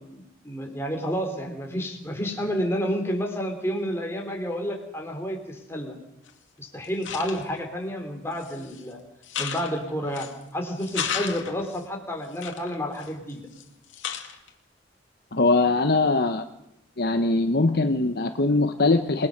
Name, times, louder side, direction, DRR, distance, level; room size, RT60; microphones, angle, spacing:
voice 1, 0.0-6.0 6.6-9.0 9.4-13.4, equal, 15° left, 2 dB, 3.9 m, -30 dB
sound 1, 6.3-6.4 6.8-7.6 8.3-8.8 9.2-10.4 10.8-11.8 12.4-13.6 13.9-14.5, left 8 dB, 75° left, 2.5 m, -34 dB
voice 2, 15.3-16.4 17.0-19.3, left 3 dB, 55° left, 7 dB, 1.0 m, -21 dB
28.0 x 19.5 x 6.7 m, 0.85 s
head